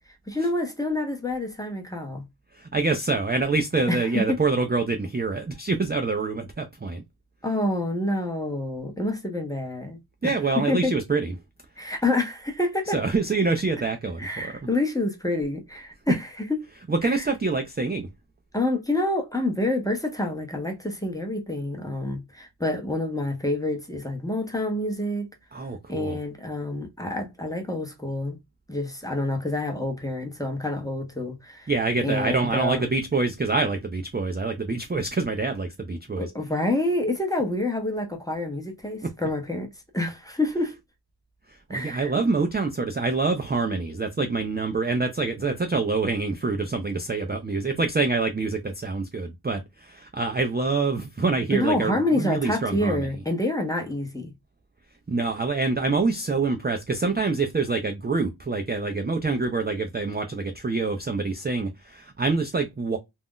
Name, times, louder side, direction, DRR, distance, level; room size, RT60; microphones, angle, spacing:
voice 1, 0.3-2.2 3.9-4.4 7.4-10.3 10.7-10.9 11.8-13.0 14.2-16.5 17.0-17.2 18.5-25.3 25.9-28.4 28.7-31.7 32.0-32.8 36.2-39.7 39.9-40.8 41.7-42.1 51.5-54.3, left 1 dB, 10° left, 0.7 m, -27 dB
voice 2, 2.5-7.0 10.2-11.3 12.9-14.5 16.9-18.1 25.5-26.2 31.7-36.3 41.5-53.1 55.1-63.0, right 3 dB, 25° right, 0.4 m, -26 dB
2.4 x 2.1 x 3.6 m
wide cardioid pair, 40°, 46 cm